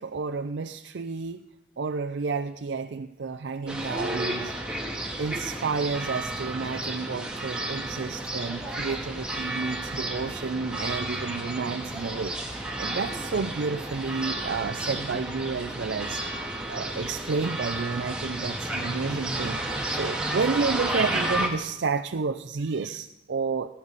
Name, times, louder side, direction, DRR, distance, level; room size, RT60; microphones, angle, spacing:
voice 1, 0.0-1.4 1.8-4.5 5.2-23.7, right 4 dB, 75° right, 7 dB, 0.5 m, -31 dB
sound 1, 3.7-21.5, right 1 dB, 5° right, 1.8 m, -32 dB
15.5 x 15.0 x 4.1 m, 0.93 s
head